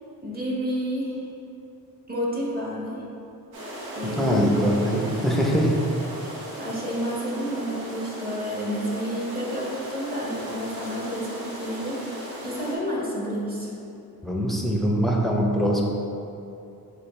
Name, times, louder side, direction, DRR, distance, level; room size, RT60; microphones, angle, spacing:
voice 1, 0.2-1.2 2.1-3.0 3.9-4.7 6.2-13.7, equal, 25° right, -5 dB, 1.4 m, -30 dB
sound 1, 3.5-12.8, right 1 dB, 85° right, 1.0 m, -37 dB
voice 2, 4.2-5.7 14.2-15.8, equal, ahead, -2 dB, 0.6 m, -22 dB
6.5 x 2.4 x 3.2 m, 2.7 s
cardioid pair, 70°, 36 cm